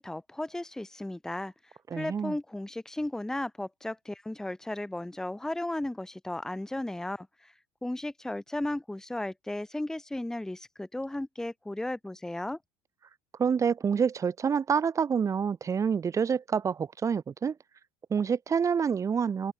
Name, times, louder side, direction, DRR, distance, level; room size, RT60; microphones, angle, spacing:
voice 1, 0.0-1.5 1.9-7.5 7.8-12.6, left 1 dB, 5° left, 0.8 m, -35 dB
voice 2, 1.9-2.3 13.4-17.6 18.1-19.5, right 6 dB, 25° right, 0.8 m, -27 dB
open air
hypercardioid pair, 75°, 12 cm